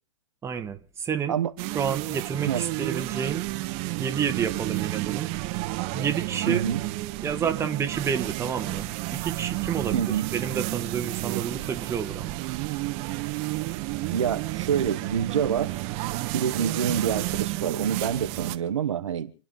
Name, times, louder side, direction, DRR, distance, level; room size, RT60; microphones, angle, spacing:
voice 1, 0.4-1.4 1.7-3.4 4.0-5.3 5.9-6.6 7.2-12.4, right 7 dB, 15° right, 1.5 m, -30 dB
sound 1, 1.6-18.6, right 19 dB, 40° right, 1.2 m, -31 dB
voice 2, 6.5-6.8 9.9-10.3 14.1-15.8 16.3-19.3, right 8 dB, 70° right, 1.4 m, -27 dB
29.0 x 10.5 x 3.9 m
hypercardioid pair, 115°, 16 cm